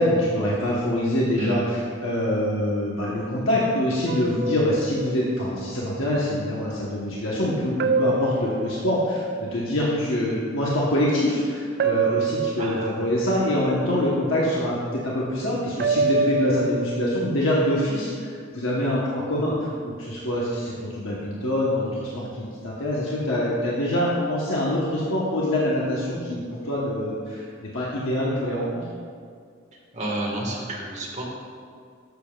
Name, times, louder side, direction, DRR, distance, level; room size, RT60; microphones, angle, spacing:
voice 1, 0.0-28.8, left 1 dB, 80° left, -6 dB, 1.1 m, -25 dB
voice 2, 1.3-1.7 12.6-13.0 29.9-31.2, right 1 dB, 35° right, -4 dB, 1.6 m, -30 dB
sound 1, 4.1-5.4 7.8-9.3 11.8-13.3 15.8-17.2, right 3 dB, 50° right, 0.3 m, -25 dB
13.0 x 6.8 x 2.4 m, 2.2 s
head